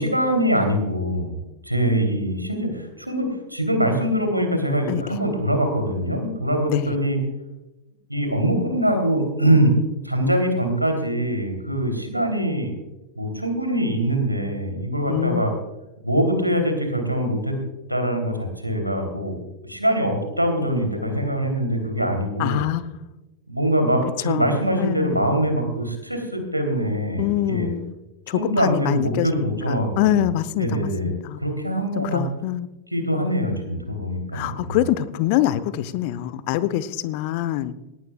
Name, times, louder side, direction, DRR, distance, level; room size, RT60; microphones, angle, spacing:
voice 1, 0.0-1.4 1.6-7.2 8.1-9.7 10.0-12.7 13.2-15.5 16.0-17.5 17.9-19.4 19.7-22.6 23.5-27.7 28.3-30.2 30.6-32.2 32.9-34.8, right 1 dB, 90° right, 4 dB, 3.2 m, -23 dB
voice 2, 15.1-15.5 22.4-23.0 24.2-25.2 27.2-27.9 28.3-31.4 32.0-32.7 34.3-37.7, left 13 dB, 45° left, 14 dB, 0.8 m, -25 dB
18.5 x 18.0 x 2.4 m, 1.0 s
figure-of-eight pair, 90°, 0 cm